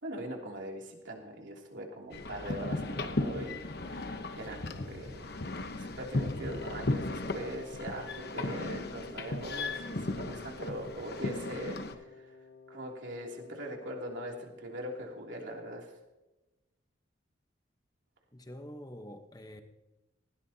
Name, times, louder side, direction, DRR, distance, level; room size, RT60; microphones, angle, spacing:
voice 1, 0.0-12.3 12.7-16.0, right 1 dB, 75° right, 0 dB, 2.9 m, -41 dB
sound 1, 2.1-12.0, left 2 dB, 55° left, 1.0 m, -36 dB
Wind instrument woodwind instrument, 6.4-14.5, left 4 dB, 80° left, 2.0 m, -51 dB
voice 2, 18.3-19.6, equal, 20° left, 6 dB, 1.1 m, -46 dB
19.0 x 17.0 x 2.9 m, 1.0 s
head